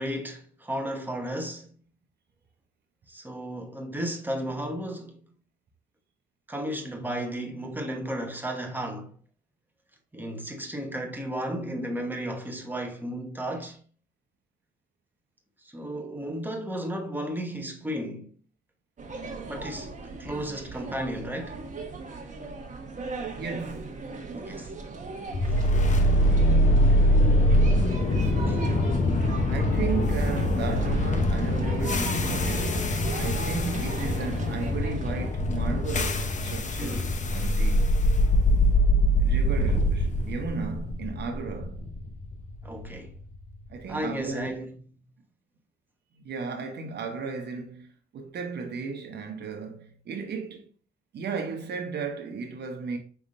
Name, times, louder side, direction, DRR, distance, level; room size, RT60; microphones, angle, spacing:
voice 1, 0.0-1.7 3.1-5.2 6.5-9.1 10.1-13.8 15.6-18.3 19.5-21.6 24.3-24.7 25.5-25.6 36.8-37.2 42.6-43.1 43.9-44.8, right 1 dB, 10° right, 1.1 m, -34 dB
sound 1, 19.0-35.3, right 3 dB, 40° right, 1.2 m, -39 dB
voice 2, 23.4-24.0 28.2-29.1 29.5-32.9 33.2-37.9 39.2-41.8 43.7-44.6 46.2-50.7 51.1-53.0, right 5 dB, 60° right, 0.9 m, -35 dB
sound 2, 25.3-43.4, left 1 dB, 40° left, 0.7 m, -23 dB
5.3 x 3.5 x 2.5 m
cardioid pair, 90°, 20 cm